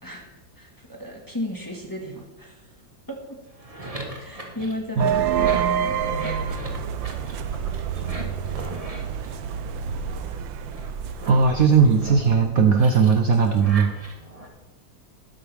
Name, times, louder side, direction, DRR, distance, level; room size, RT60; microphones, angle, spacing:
voice 1, 0.0-2.7 3.1-3.4 4.2-6.0 10.2-10.4, left 1 dB, 10° left, 0 dB, 1.8 m, -35 dB
sound 1, 3.5-10.1 10.6-14.5, right 2 dB, 20° right, 1.6 m, -39 dB
sound 2, 5.0-12.4, right 8 dB, 85° right, 1.5 m, -28 dB
voice 2, 11.3-13.9, right 5 dB, 55° right, 4 dB, 1.1 m, -18 dB
13.0 x 11.5 x 3.6 m, 1.0 s
omnidirectional pair, 2.0 m